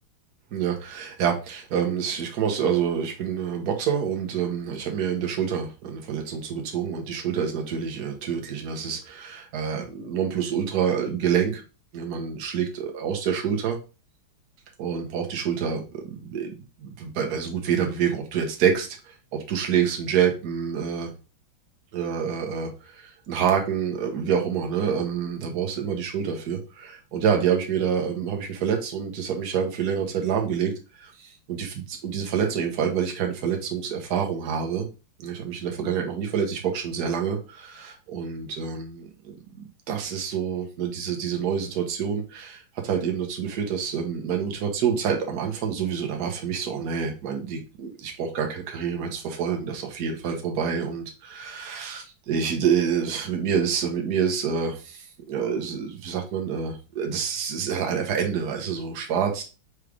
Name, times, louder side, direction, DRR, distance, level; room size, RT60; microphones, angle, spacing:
voice 1, 0.5-11.6 11.9-13.8 14.8-21.1 21.9-30.7 31.0-34.9 35.2-59.4, right 7 dB, 55° right, 3 dB, 1.3 m, -27 dB
4.9 x 3.3 x 3.2 m, 0.32 s
omnidirectional pair, 2.4 m